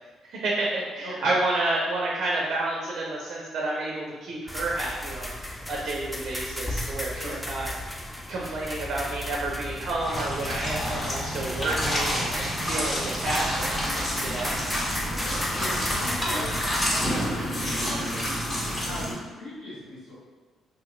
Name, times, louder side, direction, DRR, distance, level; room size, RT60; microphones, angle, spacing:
voice 1, 0.3-5.3 5.7-7.7 8.3-14.5, right 2 dB, 65° right, -3 dB, 0.5 m, -30 dB
voice 2, 1.0-1.4 7.2-7.4 15.1-18.2 18.8-20.1, left 1 dB, 85° left, -12 dB, 1.0 m, -39 dB
sound 1, 4.5-17.0, left 1 dB, 10° left, 0.4 m, -35 dB
sound 2, 10.0-19.1, equal, 45° left, 1.5 m, -29 dB
2.8 x 2.8 x 2.4 m, 1.3 s
hypercardioid pair, 45°, 0 cm